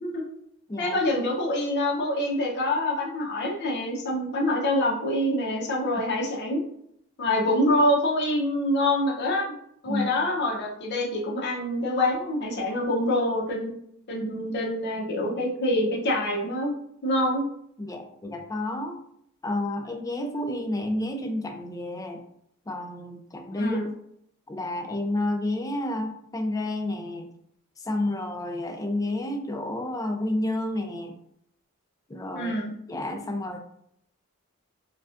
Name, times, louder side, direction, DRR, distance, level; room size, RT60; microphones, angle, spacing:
voice 1, 0.8-6.6 7.2-9.5 9.8-13.7 14.1-16.7 17.0-17.4 23.6-23.8 32.4-32.7, left 1 dB, 50° left, -2 dB, 0.7 m, -26 dB
voice 2, 17.8-19.0 19.4-22.2 22.7-23.9 24.5-27.3 27.8-31.2 32.1-32.5 32.9-33.6, left 1 dB, 15° left, 4 dB, 0.4 m, -30 dB
4.9 x 2.3 x 2.5 m, 0.71 s
head